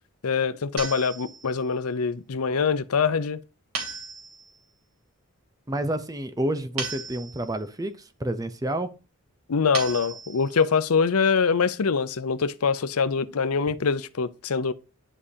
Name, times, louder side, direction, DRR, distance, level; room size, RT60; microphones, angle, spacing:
voice 1, 0.2-3.4 9.5-14.7, left 5 dB, 90° left, 0.6 m, -24 dB
sound 1, 0.8-1.7 3.8-4.6 6.8-7.7 9.7-10.7, right 4 dB, 85° right, 2.8 m, -36 dB
voice 2, 5.7-8.9, right 1 dB, 15° right, 0.7 m, -29 dB
11.0 x 4.9 x 2.8 m
head